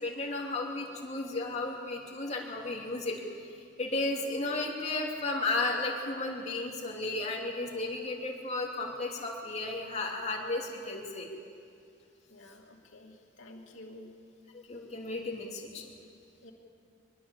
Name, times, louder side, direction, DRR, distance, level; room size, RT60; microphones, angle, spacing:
voice 1, 0.0-3.2 3.4-11.3 14.5-15.9, left 2 dB, 35° left, -1 dB, 3.2 m, -34 dB
voice 2, 12.3-14.1 16.4-16.5, left 1 dB, 90° left, 1 dB, 2.8 m, -50 dB
24.0 x 21.5 x 7.3 m, 2.4 s
head